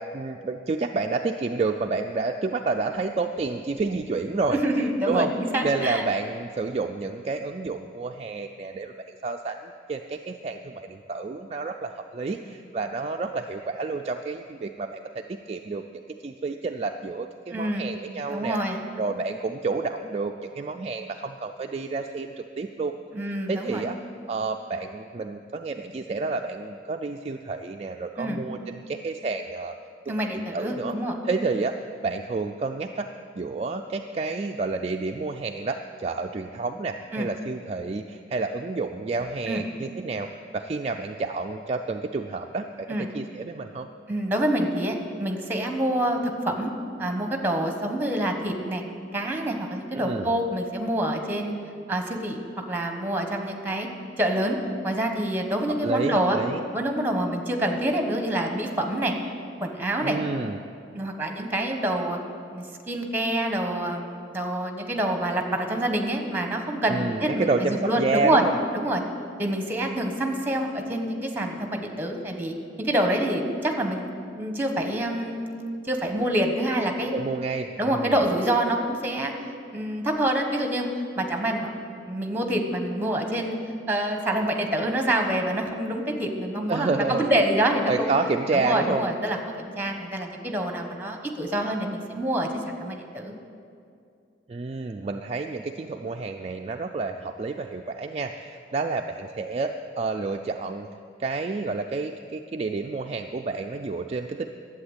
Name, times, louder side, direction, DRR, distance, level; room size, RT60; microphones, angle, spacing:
voice 1, 0.0-4.6 5.1-5.3 5.6-18.6 19.0-22.9 23.5-24.0 24.3-29.7 30.1-30.9 31.2-31.7 32.0-33.1 33.4-40.3 40.5-42.9 43.1-43.9 49.9-50.3 55.8-56.6 60.0-60.7 66.9-68.5 77.1-78.2 86.7-87.3 87.9-89.1 94.5-100.9 101.2-104.5, right 3 dB, 35° right, 4 dB, 0.3 m, -29 dB
voice 2, 4.5-6.0 17.5-17.9 18.3-18.8 23.1-23.8 28.2-28.4 30.1-31.1 37.1-37.3 39.5-39.6 42.9-43.1 44.1-46.7 47.0-48.8 49.1-51.5 51.9-52.4 52.7-53.9 54.2-54.6 54.8-56.4 56.7-59.1 59.6-60.2 60.9-62.2 62.5-68.4 68.7-69.0 69.4-74.1 74.4-77.1 77.8-79.3 79.7-80.9 81.2-81.7 82.1-83.6 83.9-88.1 88.5-93.3, right 1 dB, 10° right, 4 dB, 1.2 m, -26 dB
11.5 x 8.1 x 8.0 m, 2.4 s
head